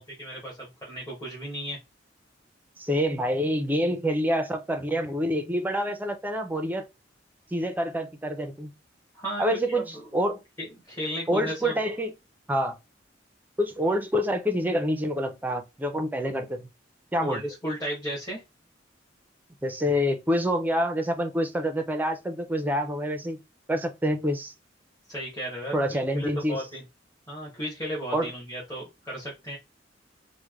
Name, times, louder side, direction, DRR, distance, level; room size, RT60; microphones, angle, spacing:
voice 1, 0.0-1.8 9.1-9.9 10.6-11.9 17.2-18.4 25.1-26.8 27.3-29.6, equal, 20° left, 1.1 m, -35 dB
voice 2, 2.8-6.9 7.5-8.7 9.4-10.4 11.3-12.1 12.5-12.7 13.6-16.7 17.1-17.4 19.6-23.4 23.7-24.5 25.7-26.6 28.1-28.3, equal, 10° right, 0.5 m, -27 dB
3.2 x 2.1 x 3.5 m
head